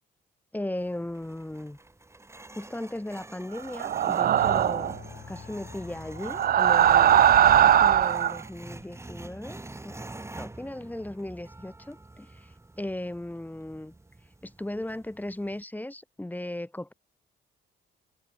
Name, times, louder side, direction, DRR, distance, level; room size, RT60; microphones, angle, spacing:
voice 1, 0.5-1.8 2.5-4.9 5.3-7.3 7.6-10.0 10.3-13.9 14.4-16.9, left 1 dB, 10° left, 3.2 m, -37 dB
sound 1, 0.8-15.6, right 2 dB, 15° right, 2.1 m, -47 dB
sound 2, 3.8-5.0 6.2-8.4, right 10 dB, 50° right, 0.5 m, -20 dB
sound 3, 4.4-8.3, left 7 dB, 50° left, 7.7 m, -46 dB
cardioid pair, 90°, 20 cm